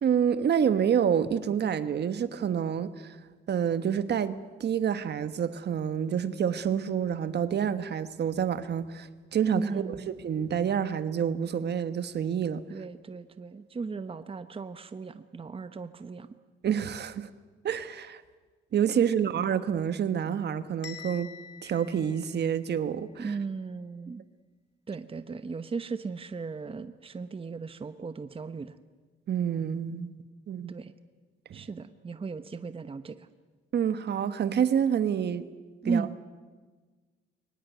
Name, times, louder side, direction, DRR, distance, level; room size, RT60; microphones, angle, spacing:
voice 1, 0.0-3.1 3.5-10.0 10.2-12.6 16.6-17.3 17.6-18.2 18.7-21.3 21.6-23.3 29.3-30.1 30.5-30.8 31.5-31.6 33.7-35.5 35.8-36.1, right 8 dB, 55° right, 12 dB, 1.3 m, -28 dB
voice 2, 9.5-10.1 12.7-16.3 23.2-24.2 24.9-28.8 30.7-30.9 31.5-33.3 35.8-36.2, right 4 dB, 30° right, 11 dB, 1.0 m, -36 dB
Bell, 20.8-22.9, left 8 dB, 65° left, 3.1 m, -47 dB
23.0 x 19.0 x 9.1 m, 1.4 s
cardioid pair, 90°, 20 cm